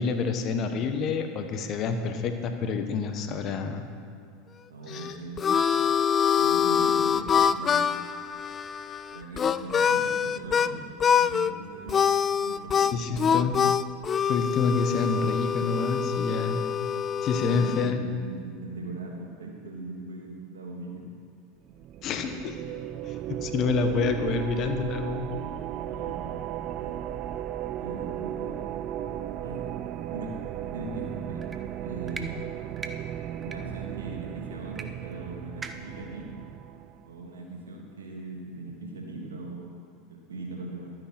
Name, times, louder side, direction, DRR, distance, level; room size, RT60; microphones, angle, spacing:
voice 1, 0.0-3.9 4.9-5.0 12.8-13.6 14.3-16.6 17.2-18.0 22.0-22.5 23.0-25.3, left 5 dB, 45° left, 7 dB, 1.1 m, -28 dB
voice 2, 4.7-5.6 6.3-7.9 9.1-13.4 17.3-21.0 25.7-26.3 26.8-26.9 27.7-28.6 29.4-29.6 30.1-30.4 30.7-31.4 31.8-32.5 33.4-36.3 37.1-39.7 40.1-40.9, right 2 dB, 90° right, 0 dB, 1.8 m, -40 dB
Harmonica, 4.9-10.7 11.0-11.5 11.9-17.9, left 7 dB, 30° left, 0.3 m, -25 dB
sound 1, 21.7-37.1, right 11 dB, 50° right, 0.4 m, -35 dB
sound 2, 31.4-31.6 32.1-32.3 32.8-32.9 33.4-33.6 34.8-34.9 35.1-35.2 35.6-36.0, right 4 dB, 20° right, 0.7 m, -38 dB
12.5 x 8.9 x 4.3 m, 2.3 s
hypercardioid pair, 90°, 0 cm